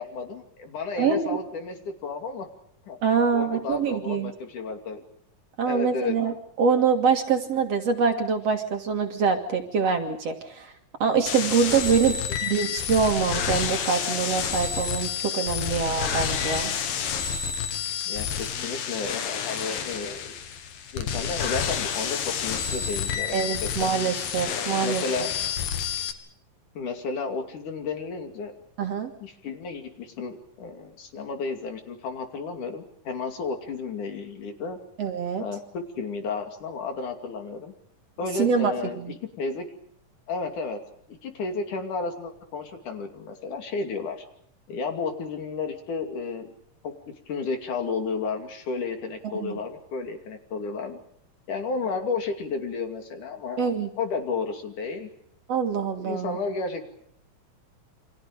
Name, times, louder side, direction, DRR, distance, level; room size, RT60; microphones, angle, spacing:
voice 1, 0.0-2.5 2.8-3.0 3.3-5.0 5.7-6.2 12.0-12.2 18.1-20.3 20.9-23.9 24.5-25.3 26.8-28.5 29.2-34.8 35.4-37.7 38.2-39.0 39.4-39.7 40.3-40.8 41.1-44.3 44.7-46.5 46.8-46.9 47.3-51.0 51.5-53.7 54.0-55.1 55.7-56.9, left 4 dB, 65° left, 5 dB, 4.0 m, -32 dB
voice 2, 1.0-1.4 3.0-4.3 5.6-10.7 11.0-12.2 12.4-16.7 23.3-25.3 28.8-29.1 35.0-35.4 38.3-39.1 49.4-49.6 53.6-53.9 55.5-56.4, right 6 dB, 50° right, 5 dB, 2.7 m, -25 dB
sound 1, 11.3-26.1, left 8 dB, 85° left, 3.6 m, -29 dB
29.0 x 25.5 x 5.2 m, 0.68 s
omnidirectional pair, 4.0 m